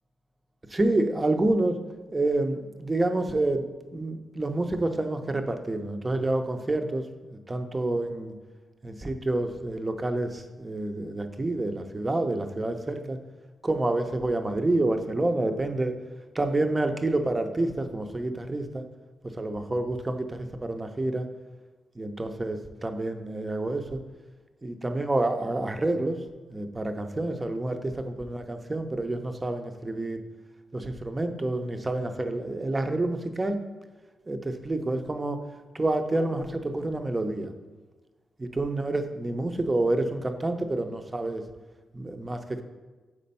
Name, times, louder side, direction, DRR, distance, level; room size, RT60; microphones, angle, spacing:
voice 1, 0.7-1.8 2.1-3.6 3.9-7.0 7.5-8.3 8.8-13.2 13.6-15.9 16.3-18.8 19.4-21.3 22.0-24.0 24.6-26.2 26.5-30.2 30.7-33.6 34.3-35.4 35.7-37.5 38.4-41.4 41.9-42.6, right 2 dB, 25° right, 6 dB, 0.7 m, -28 dB
5.0 x 4.2 x 5.5 m, 1.2 s
cardioid pair, 60°, 0 cm